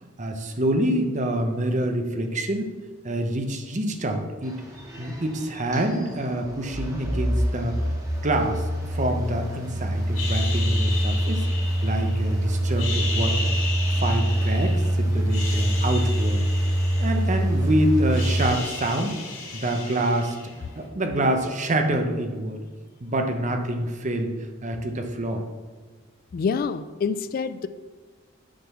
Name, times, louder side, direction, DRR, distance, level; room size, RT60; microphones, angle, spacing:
voice 1, 0.0-2.7 3.0-4.6 5.0-7.8 8.2-11.5 11.8-13.5 14.0-16.4 17.0-19.2 19.5-22.6 23.0-24.3 24.6-25.4, right 1 dB, 35° right, 5 dB, 0.8 m, -26 dB
sound 1, 4.4-18.5, right 1 dB, 15° right, 1.6 m, -25 dB
sound 2, 10.1-12.3 12.7-14.9 15.2-17.6 17.9-20.8, left 3 dB, 70° left, 2.6 m, -34 dB
voice 2, 26.3-27.7, left 5 dB, 45° left, 13 dB, 0.3 m, -26 dB
8.6 x 3.8 x 6.1 m, 1.4 s
head